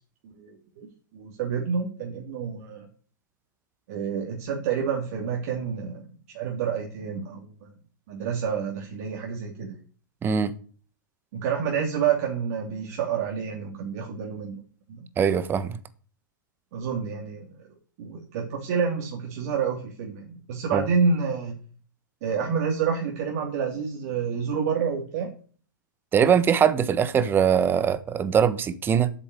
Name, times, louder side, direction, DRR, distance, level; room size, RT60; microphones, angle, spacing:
voice 1, 0.2-0.9 1.1-2.9 3.9-7.7 8.1-9.8 11.3-14.6 14.9-15.1 16.7-17.7 18.0-21.6 22.2-25.3, right 6 dB, 50° right, 2.8 m, -28 dB
voice 2, 10.2-10.5 15.2-15.8 20.7-20.8 26.1-29.1, right 7 dB, 20° right, 1.2 m, -22 dB
8.9 x 8.7 x 8.2 m
figure-of-eight pair, 110°, 11 cm